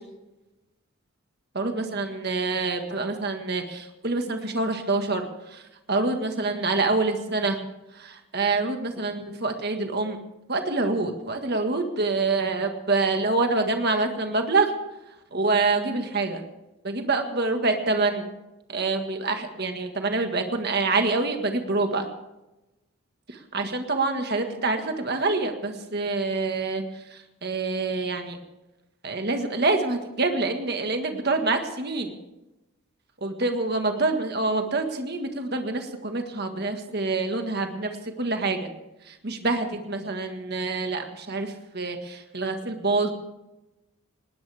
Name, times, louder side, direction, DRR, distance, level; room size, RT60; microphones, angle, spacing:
voice 1, 1.5-7.6 7.9-10.2 10.5-14.7 15.1-16.4 16.8-18.3 18.7-22.1 23.3-28.4 29.0-32.1 33.2-38.7 39.0-43.1, right 3 dB, 45° right, 5 dB, 1.7 m, -26 dB
19.5 x 19.0 x 3.5 m, 0.99 s
head